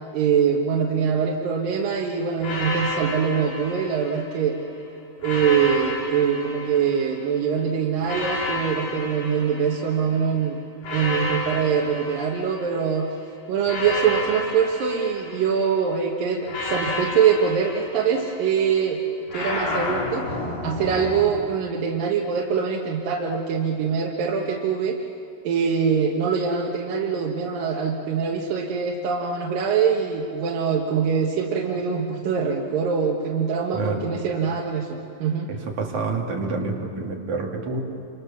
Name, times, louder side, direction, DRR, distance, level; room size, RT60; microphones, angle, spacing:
voice 1, 0.1-4.6 5.2-10.6 10.9-13.1 13.5-19.0 19.3-25.0 25.4-35.5, right 6 dB, 80° right, -1 dB, 3.2 m, -23 dB
sound 1, 2.4-4.6 5.2-7.4 8.0-10.2 10.8-13.0 13.6-15.8 16.5-18.6 19.3-21.3, left 2 dB, 75° left, 6.3 m, -31 dB
voice 2, 33.7-34.1 35.5-37.8, right 3 dB, 60° right, 0 dB, 3.9 m, -28 dB
28.5 x 26.5 x 7.2 m, 2.6 s
omnidirectional pair, 3.9 m